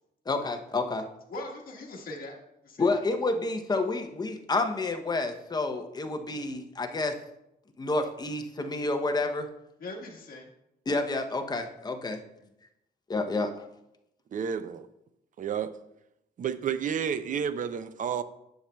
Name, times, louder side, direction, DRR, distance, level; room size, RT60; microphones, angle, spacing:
voice 1, 0.3-1.1 2.8-7.2 7.8-9.5 10.9-12.2 13.1-13.5, left 3 dB, 20° left, 5 dB, 0.6 m, -29 dB
voice 2, 1.3-2.4 2.6-3.0 9.8-10.5 12.4-12.5, left 2 dB, 55° left, -1 dB, 1.4 m, -41 dB
voice 3, 14.3-14.9 15.4-15.7 16.4-18.2, right 7 dB, 50° right, 12 dB, 0.4 m, -30 dB
10.0 x 6.5 x 2.2 m, 0.84 s
wide cardioid pair, 155°, 18 cm